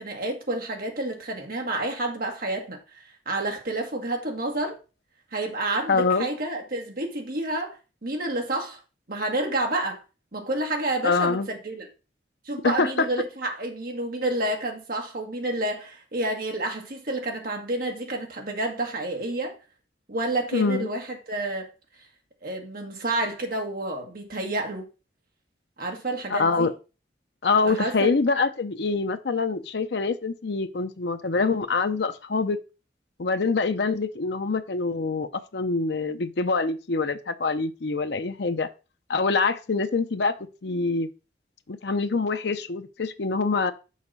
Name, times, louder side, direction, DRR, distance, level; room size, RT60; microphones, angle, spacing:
voice 1, 0.0-4.8 5.3-7.8 8.0-8.8 9.1-10.0 10.3-11.9 12.4-19.5 20.1-21.7 22.4-24.9 25.8-26.7 27.6-28.1, right 2 dB, 50° right, 1.7 m, -29 dB
voice 2, 5.9-6.3 11.0-11.5 12.6-13.1 20.5-20.9 26.3-26.7 27.4-32.6 33.2-38.7 39.1-40.4 40.6-41.1 41.7-43.7, left 4 dB, 65° left, 0.6 m, -25 dB
6.5 x 4.8 x 5.4 m
head